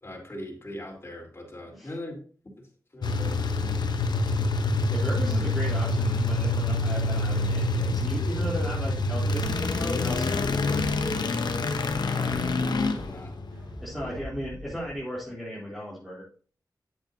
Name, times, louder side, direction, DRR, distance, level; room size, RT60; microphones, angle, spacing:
voice 1, 0.0-2.2 2.6-2.7 2.9-3.7 12.0-12.5 12.8-13.4 14.0-14.1, left 1 dB, 35° left, -1 dB, 3.9 m, -41 dB
sound 1, 3.0-14.2, left 2 dB, 80° left, 0.9 m, -26 dB
voice 2, 4.9-11.5 12.1-12.5 13.8-16.2, equal, ahead, -7 dB, 3.6 m, -36 dB
sound 2, 9.9-15.2, equal, 55° right, 3.9 m, -43 dB
9.6 x 8.2 x 2.8 m, 0.42 s
cardioid pair, 55°, 7 cm